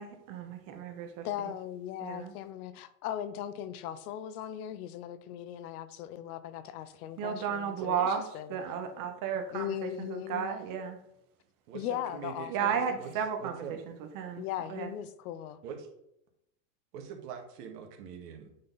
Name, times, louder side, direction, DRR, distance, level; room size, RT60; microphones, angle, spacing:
voice 1, 0.0-1.5 2.0-2.3 7.2-8.2 8.5-11.0 12.5-14.4 14.7-14.9, right 7 dB, 40° right, 5 dB, 1.3 m, -34 dB
voice 2, 1.2-8.6 9.5-10.5 11.7-12.8 14.4-15.6, left 11 dB, 65° left, 14 dB, 0.8 m, -38 dB
voice 3, 11.7-13.1 13.4-13.8 15.6-15.9 16.9-18.5, right 7 dB, 70° right, 3 dB, 1.9 m, -43 dB
8.6 x 4.1 x 4.0 m, 0.79 s
supercardioid pair, 130°, 48 cm